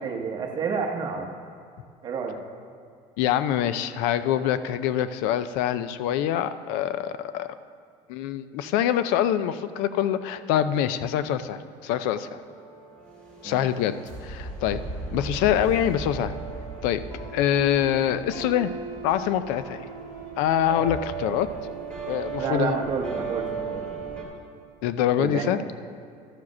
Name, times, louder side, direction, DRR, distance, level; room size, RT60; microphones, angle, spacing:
voice 1, 0.0-1.3 2.0-2.4 13.4-13.6 22.4-23.8 24.1-24.2 25.2-25.5, right 5 dB, 30° right, 3 dB, 0.9 m, -29 dB
voice 2, 3.2-7.5 8.1-12.4 13.4-13.9 14.2-14.8 15.1-16.3 16.8-17.0 17.3-18.7 19.0-19.8 20.4-21.5 22.1-22.8 24.8-25.6, left 10 dB, 80° left, 13 dB, 0.4 m, -25 dB
sound 1, 11.4-24.2, right 4 dB, 10° left, 2.2 m, -36 dB
13.0 x 4.8 x 6.1 m, 2.3 s
cardioid pair, 165°, 14 cm